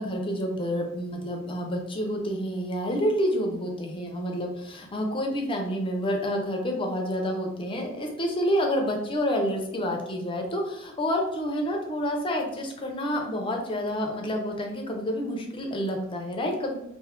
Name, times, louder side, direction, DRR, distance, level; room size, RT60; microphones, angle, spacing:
voice 1, 0.0-16.8, equal, 25° left, 2 dB, 0.4 m, -28 dB
2.5 x 2.3 x 3.5 m, 0.89 s
head